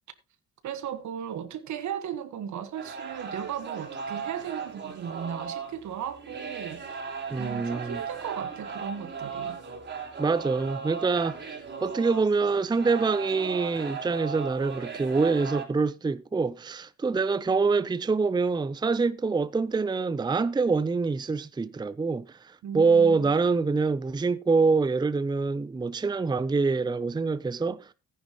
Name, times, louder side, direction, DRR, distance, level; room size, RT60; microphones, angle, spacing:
voice 1, 0.6-7.0 7.4-9.6 22.6-23.4, right 8 dB, 70° right, 1.4 m, -36 dB
sound 1, 2.8-15.7, right 6 dB, 40° right, 3.7 m, -37 dB
voice 2, 7.3-8.0 10.2-11.5 11.8-27.9, right 4 dB, 15° right, 0.6 m, -25 dB
14.5 x 10.0 x 3.0 m
cardioid pair, 90°, 30 cm